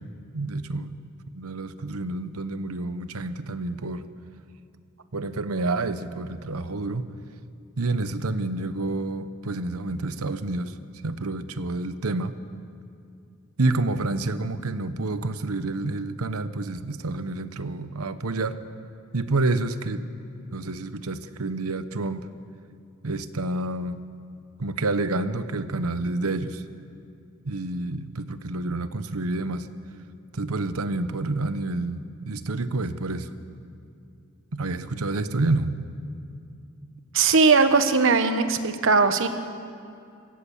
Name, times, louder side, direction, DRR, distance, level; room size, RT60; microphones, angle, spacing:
voice 1, 0.3-0.9 1.3-4.0 5.1-7.1 7.8-10.7 11.0-12.4 13.6-18.6 19.1-20.1 20.5-22.2 23.0-24.0 24.6-26.6 27.5-29.7 30.3-33.3 34.5-35.7, right 2 dB, 80° right, 12 dB, 0.9 m, -28 dB
voice 2, 37.1-39.3, right 4 dB, 60° right, 9 dB, 1.2 m, -19 dB
25.5 x 15.5 x 7.2 m, 2.4 s
head